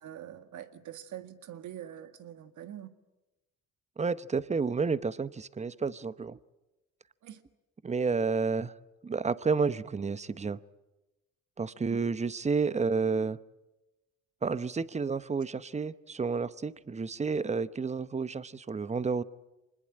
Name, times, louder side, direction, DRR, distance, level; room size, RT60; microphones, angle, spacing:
voice 1, 0.0-2.9 7.2-7.4 11.9-12.0, right 11 dB, 75° right, 9 dB, 1.9 m, -44 dB
voice 2, 4.0-6.4 7.8-8.7 9.0-10.6 11.6-13.4 14.4-19.2, right 4 dB, 20° right, 16 dB, 0.8 m, -30 dB
25.0 x 20.5 x 8.8 m, 1.0 s
cardioid pair, 90°, 30 cm